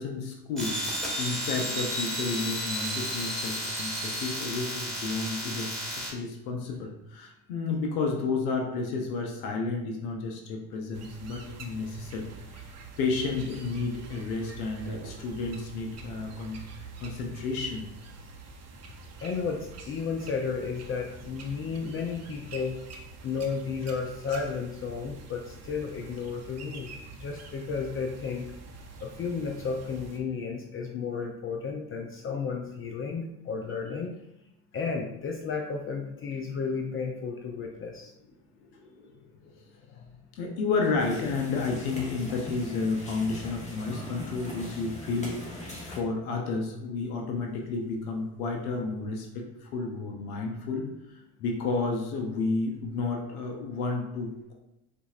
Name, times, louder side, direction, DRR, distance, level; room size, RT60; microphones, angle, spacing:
voice 1, 0.0-12.3 12.5-12.7 13.0-16.6 17.0-17.9 38.7-39.5 39.9-40.1 40.4-50.9 51.4-54.5, left 4 dB, 85° left, 1 dB, 0.7 m, -31 dB
sound 1, 0.6-6.1, equal, ahead, 1.3 m, -32 dB
sound 2, 10.9-30.2, right 4 dB, 40° right, 0.7 m, -46 dB
voice 2, 19.2-22.8 23.2-28.5 29.0-34.1 34.7-38.1, left 5 dB, 30° left, 2 dB, 0.4 m, -33 dB
sound 3, 41.0-46.0, left 1 dB, 15° left, 1.2 m, -41 dB
4.0 x 2.6 x 2.4 m, 0.87 s
hypercardioid pair, 75°, 42 cm